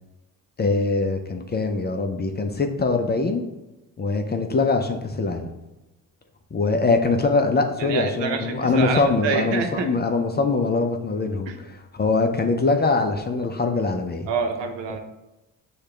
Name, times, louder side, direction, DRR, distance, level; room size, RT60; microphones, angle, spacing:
voice 1, 0.6-3.5 4.0-5.5 6.5-14.3, left 3 dB, 25° left, 5 dB, 0.5 m, -23 dB
voice 2, 7.8-9.9 11.5-11.6 14.3-15.0, right 5 dB, 75° right, 4 dB, 0.8 m, -27 dB
6.5 x 2.4 x 3.2 m, 1.0 s
supercardioid pair, 65°, 43 cm